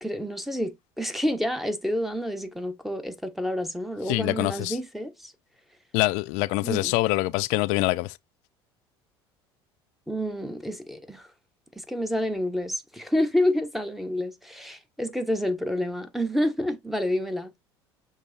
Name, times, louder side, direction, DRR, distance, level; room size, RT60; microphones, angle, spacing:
voice 1, 0.0-5.3 6.6-6.9 10.1-11.3 11.8-17.5, left 1 dB, ahead, 1.0 m, -28 dB
voice 2, 4.1-4.8 5.9-8.1, left 20 dB, 60° left, 0.4 m, -25 dB
6.5 x 3.0 x 2.6 m
hypercardioid pair, 65°, 14 cm